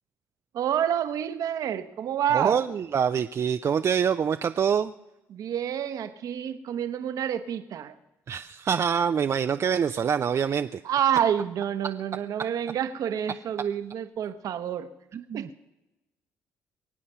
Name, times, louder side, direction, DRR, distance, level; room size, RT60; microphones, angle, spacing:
voice 1, 0.5-2.6 5.3-7.9 10.8-14.9 15.3-15.5, right 9 dB, 65° right, 10 dB, 1.0 m, -28 dB
voice 2, 2.3-4.9 8.3-10.8 15.1-15.5, right 7 dB, 45° right, 9 dB, 0.5 m, -25 dB
23.0 x 8.5 x 5.6 m, 0.99 s
hypercardioid pair, 55°, 7 cm